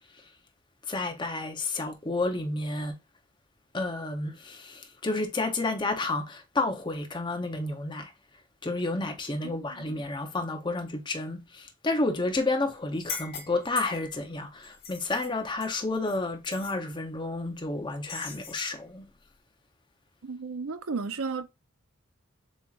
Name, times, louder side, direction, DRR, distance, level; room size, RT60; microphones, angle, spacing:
voice 1, 0.9-3.0 3.7-8.1 8.6-19.1, left 2 dB, 20° left, 0.7 m, -31 dB
sound 1, 12.9-14.2 14.6-16.2 16.4-16.8 18.1-18.7, left 5 dB, 45° left, 2.7 m, -40 dB
voice 2, 20.2-21.5, right 4 dB, 70° right, 0.6 m, -33 dB
7.2 x 2.9 x 2.4 m
head